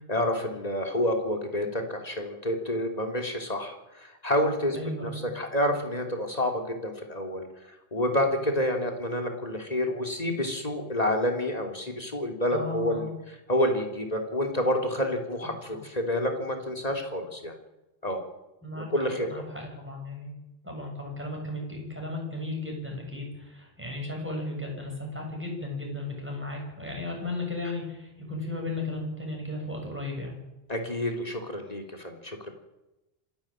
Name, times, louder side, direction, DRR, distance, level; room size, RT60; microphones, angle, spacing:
voice 1, 0.1-4.8 5.0-5.1 5.3-7.4 7.9-13.1 13.5-17.5 18.0-18.2 18.7-19.3 30.7-32.5, left 1 dB, 40° left, 4 dB, 3.4 m, -28 dB
voice 2, 4.7-5.2 12.5-13.1 18.6-18.9 19.3-20.3 20.6-30.4, left 2 dB, 10° right, 0 dB, 7.6 m, -35 dB
26.0 x 11.5 x 9.0 m, 0.97 s
omnidirectional pair, 1.1 m